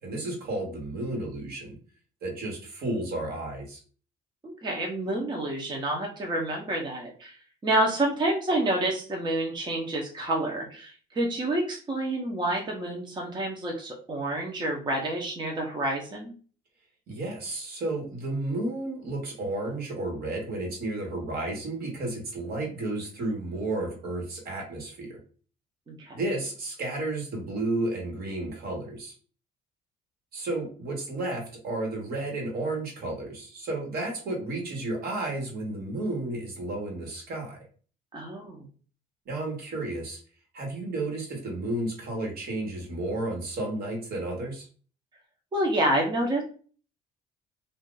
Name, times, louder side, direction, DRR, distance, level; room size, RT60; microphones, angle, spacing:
voice 1, 0.0-1.8 2.2-3.8 17.1-25.2 26.1-29.1 30.3-37.6 39.2-40.2 40.5-44.7, right 2 dB, 65° right, 0 dB, 1.4 m, -32 dB
voice 2, 4.4-7.4 7.6-16.3 25.9-26.2 38.1-38.6 45.5-46.4, right 1 dB, 25° right, 0 dB, 0.8 m, -28 dB
2.6 x 2.5 x 3.8 m, 0.41 s
cardioid pair, 110°, 17 cm